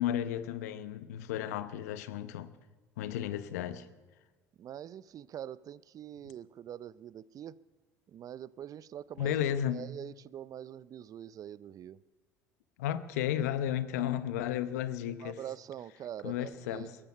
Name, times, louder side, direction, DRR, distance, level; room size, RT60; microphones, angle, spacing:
voice 1, 0.0-2.5 3.0-3.9 9.2-9.8 12.8-15.4 16.2-17.0, left 11 dB, 75° left, 0.9 m, -33 dB
voice 2, 4.6-7.6 8.1-9.3 9.7-12.0 15.2-16.9, right 10 dB, 45° right, 0.5 m, -44 dB
21.5 x 12.0 x 5.7 m
hypercardioid pair, 70°, 9 cm